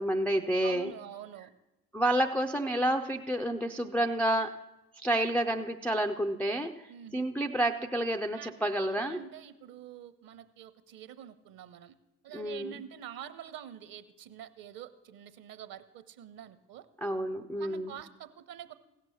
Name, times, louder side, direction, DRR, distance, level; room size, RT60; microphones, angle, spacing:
voice 1, 0.0-0.9 1.9-4.5 5.0-9.2 12.3-12.8 17.0-17.9, right 1 dB, 5° left, 3 dB, 0.3 m, -29 dB
voice 2, 0.6-1.5 6.9-7.3 8.3-8.5 8.8-11.9 12.2-16.8 17.6-18.7, right 10 dB, 45° right, 12 dB, 0.9 m, -46 dB
16.5 x 6.4 x 4.2 m, 0.98 s
figure-of-eight pair, 50°, 49 cm